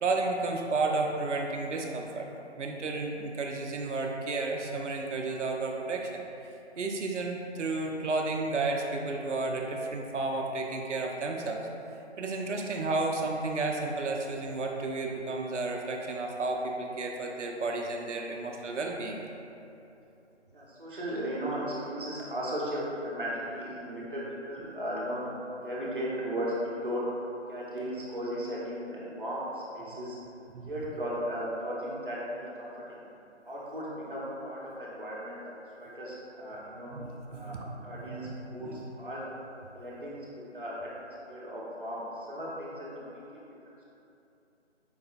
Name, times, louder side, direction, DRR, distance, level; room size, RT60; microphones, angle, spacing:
voice 1, 0.0-2.3 2.6-11.7 12.2-19.2 30.5-30.6 36.9-38.3 38.6-38.8, right 3 dB, 85° right, 1 dB, 0.5 m, -32 dB
voice 2, 20.5-25.2 25.6-27.0 27.5-30.2 30.6-33.0 33.4-35.4 35.7-36.9 37.3-37.6 37.8-39.2 39.7-40.2 40.5-43.4 43.7-43.8, equal, 50° right, -6 dB, 0.8 m, -36 dB
4.7 x 2.7 x 2.3 m, 2.9 s
figure-of-eight pair, 175°, 35 cm